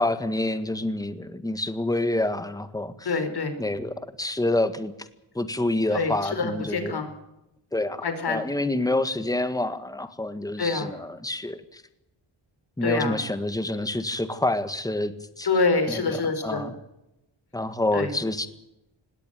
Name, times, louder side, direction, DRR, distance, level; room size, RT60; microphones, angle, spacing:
voice 1, 0.0-3.1 3.6-4.9 5.3-7.0 7.7-11.8 12.8-15.5 15.9-16.0 16.4-16.7 17.5-18.5, left 2 dB, 10° left, 11 dB, 1.7 m, -27 dB
voice 2, 3.0-3.6 5.9-7.1 8.0-8.4 10.6-10.9 12.8-13.2 15.4-16.6 17.9-18.1, left 4 dB, 55° left, 8 dB, 4.9 m, -26 dB
20.5 x 17.5 x 9.2 m, 0.89 s
wide cardioid pair, 115°, 46 cm